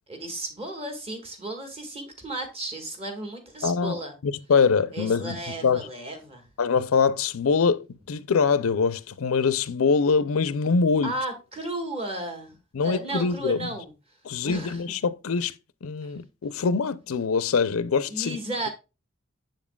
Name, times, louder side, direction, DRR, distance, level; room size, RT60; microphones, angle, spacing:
voice 1, 0.1-4.1 4.9-6.4 11.0-12.5 12.8-13.9 14.4-14.8 16.0-16.1 18.1-18.7, right 1 dB, 30° right, 1.7 m, -34 dB
voice 2, 3.6-4.0 4.2-5.9 6.6-11.1 12.7-13.7 14.3-15.5 15.8-18.4, left 5 dB, 85° left, 0.5 m, -24 dB
7.5 x 7.2 x 2.3 m
head